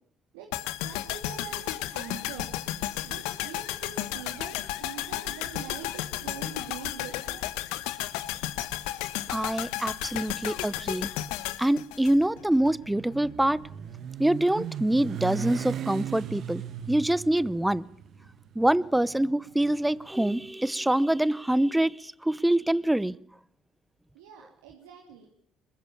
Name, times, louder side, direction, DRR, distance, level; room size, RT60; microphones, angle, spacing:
sound 1, 0.5-12.7 13.0-13.1, left 15 dB, 80° left, 1.2 m, -33 dB
voice 1, 0.7-2.6 3.0-7.4 24.1-25.3, right 8 dB, 90° right, 1 dB, 2.7 m, -44 dB
voice 2, 9.3-11.1 11.6-13.7 14.2-17.9 18.5-23.2, right 1 dB, 5° right, 20 dB, 0.8 m, -25 dB
Motorcycle, 12.1-20.3, right 9 dB, 60° right, 1.3 m, -38 dB
21.5 x 21.5 x 7.1 m, 0.64 s
supercardioid pair, 70°, 0 cm